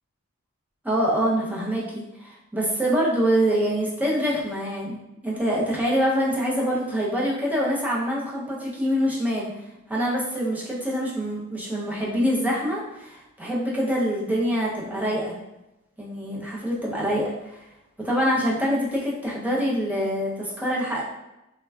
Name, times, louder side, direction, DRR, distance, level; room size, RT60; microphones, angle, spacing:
voice 1, 0.8-9.5 9.9-15.3 16.0-17.6 18.0-21.0, equal, 5° right, -5 dB, 0.5 m, -25 dB
3.3 x 2.1 x 2.2 m, 0.93 s
head